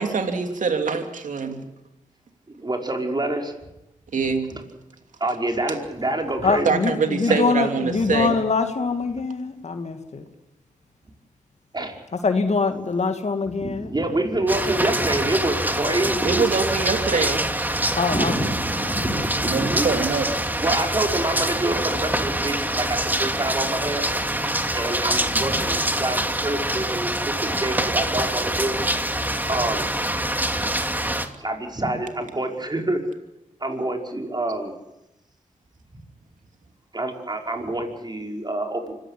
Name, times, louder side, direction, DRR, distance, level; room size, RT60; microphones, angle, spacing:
voice 1, 0.0-1.6 4.1-4.5 6.6-8.4 16.2-17.5 19.5-20.3, right 5 dB, 70° right, 6 dB, 2.8 m, -24 dB
voice 2, 2.6-3.6 4.5-4.6 5.2-6.7 7.3-7.4 11.7-12.0 13.6-16.5 18.1-20.0 20.6-24.2 24.7-28.8 29.5-29.9 31.4-33.0 33.6-34.7 36.9-38.9, right 2 dB, 30° right, 2 dB, 5.5 m, -27 dB
voice 3, 6.4-10.2 12.2-13.9 18.0-18.4 18.8-19.2, left 4 dB, 55° left, 7 dB, 2.4 m, -24 dB
sound 1, 14.5-31.3, right 1 dB, 15° right, 2.6 m, -25 dB
25.5 x 16.0 x 10.0 m, 0.90 s
cardioid pair, 45°, 14 cm